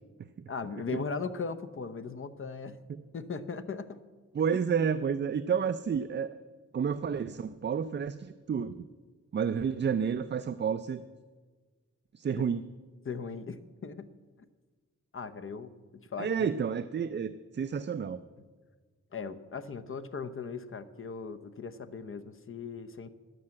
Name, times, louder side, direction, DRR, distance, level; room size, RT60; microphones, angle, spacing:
voice 1, 0.5-2.8 3.1-4.0 4.5-4.6 12.4-12.5 13.0-14.1 15.1-15.7 16.1-16.5 18.4-18.5 19.1-23.1, left 5 dB, 45° left, 12 dB, 0.8 m, -38 dB
voice 2, 4.3-6.3 6.7-8.8 9.3-11.0 12.1-12.6 16.2-18.2, right 7 dB, 40° right, 12 dB, 0.4 m, -30 dB
13.0 x 10.5 x 7.7 m, 1.4 s
wide cardioid pair, 135°, 29 cm